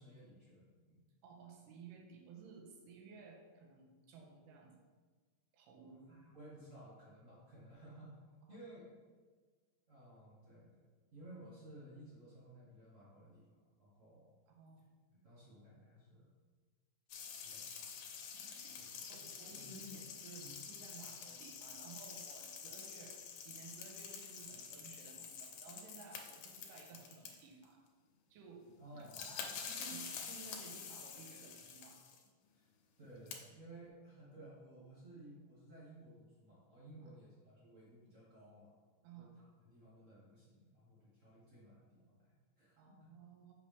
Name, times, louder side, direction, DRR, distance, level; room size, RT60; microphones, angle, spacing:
voice 1, 0.0-1.1 5.8-8.1 8.5-8.8 9.9-14.3 15.2-16.3 17.4-17.7 18.7-18.8 19.1-20.0 20.4-20.6 28.8-29.3 32.5-32.7 33.0-38.7 39.1-43.1, right 1 dB, 50° right, -8 dB, 0.9 m, -57 dB
voice 2, 1.2-4.8 5.5-6.0 8.4-8.6 14.5-14.8 18.3-27.8 28.3-32.3 37.0-37.2 39.0-39.4 42.8-43.5, right 5 dB, 90° right, 2 dB, 2.4 m, -56 dB
sound 1, 17.1-27.6 28.7-28.8 29.0-32.2 33.0-33.3, left 7 dB, 85° left, 2.4 m, -48 dB
6.2 x 5.6 x 3.3 m, 1.4 s
omnidirectional pair, 3.8 m